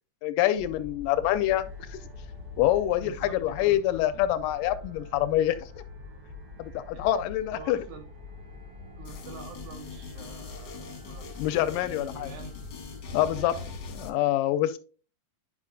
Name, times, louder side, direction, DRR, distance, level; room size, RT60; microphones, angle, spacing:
voice 1, 0.2-2.0 2.6-5.7 6.6-7.8 11.4-12.3 13.1-13.5 14.0-14.8, left 13 dB, 80° left, 12 dB, 2.1 m, -26 dB
sound 1, 0.5-14.1, left 3 dB, 35° right, 1.9 m, -45 dB
sound 2, 1.4-13.1, left 2 dB, 55° right, 2.1 m, -52 dB
voice 2, 3.0-4.2 6.9-7.1 7.5-8.3 9.0-11.3 11.7-12.6 13.0-13.8, right 6 dB, 70° right, 5 dB, 2.5 m, -47 dB
sound 3, 9.0-14.1, left 5 dB, 55° left, 1.4 m, -43 dB
9.9 x 5.3 x 2.6 m, 0.37 s
omnidirectional pair, 3.9 m